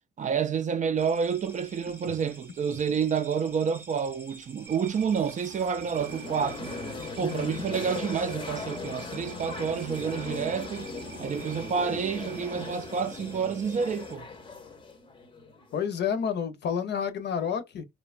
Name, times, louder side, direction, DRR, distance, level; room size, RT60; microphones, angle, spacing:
voice 1, 0.2-6.7 7.2-10.9 11.2-14.3, right 6 dB, 40° right, 0.4 m, -29 dB
sound 1, 1.0-14.2, right 2 dB, 10° right, 0.8 m, -51 dB
sound 2, 4.7-12.5, right 7 dB, 85° right, 0.6 m, -47 dB
sound 3, 5.8-15.8, left 3 dB, 25° left, 0.6 m, -39 dB
voice 2, 7.2-7.7 15.7-17.9, left 7 dB, 60° left, 0.7 m, -30 dB
2.8 x 2.2 x 2.4 m
cardioid pair, 90°, 20 cm